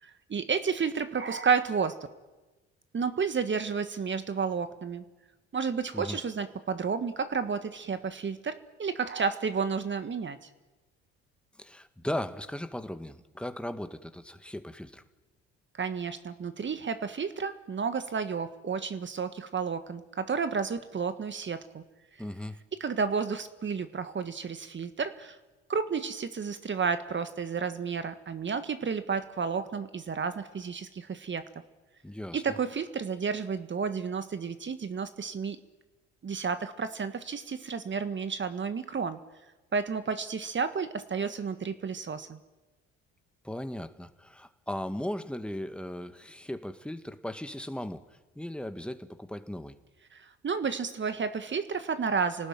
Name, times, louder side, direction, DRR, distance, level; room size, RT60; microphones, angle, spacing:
voice 1, 0.0-2.1 2.9-5.0 5.5-10.5 15.7-21.8 22.8-25.4 25.7-31.4 32.3-35.6 36.2-39.2 39.7-42.4 50.1-52.5, right 5 dB, 35° right, 11 dB, 1.7 m, -31 dB
voice 2, 11.6-15.0 22.2-22.6 32.0-32.4 43.4-49.8, left 1 dB, 5° left, 10 dB, 1.8 m, -37 dB
29.0 x 19.0 x 9.1 m, 1.2 s
hypercardioid pair, 55°, 33 cm